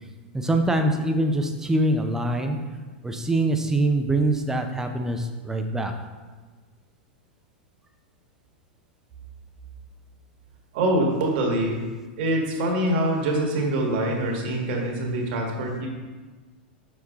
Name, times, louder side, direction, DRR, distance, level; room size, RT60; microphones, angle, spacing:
voice 1, 0.3-2.6 3.0-5.9, right 1 dB, 10° right, 5 dB, 0.7 m, -24 dB
voice 2, 10.7-11.8 12.2-15.9, right 1 dB, 55° right, 0 dB, 1.6 m, -24 dB
6.6 x 4.5 x 3.6 m, 1.3 s
hypercardioid pair, 105°, 6 cm